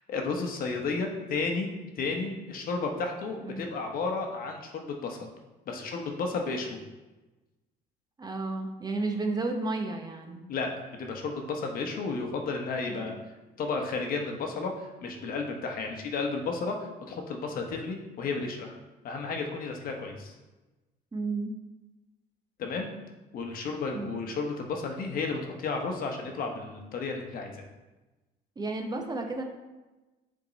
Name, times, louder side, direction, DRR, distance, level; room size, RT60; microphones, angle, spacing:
voice 1, 0.1-1.7 2.0-5.3 5.7-6.8 10.5-10.7 11.0-13.1 13.6-18.8 19.0-20.3 22.6-22.9 23.3-27.6, left 4 dB, 60° left, 3 dB, 1.0 m, -32 dB
voice 2, 8.2-10.5 12.8-13.2 21.1-21.5 23.9-24.2 28.6-29.4, right 3 dB, 25° right, 4 dB, 0.8 m, -32 dB
7.0 x 3.7 x 4.0 m, 1.1 s
cardioid pair, 110°, 17 cm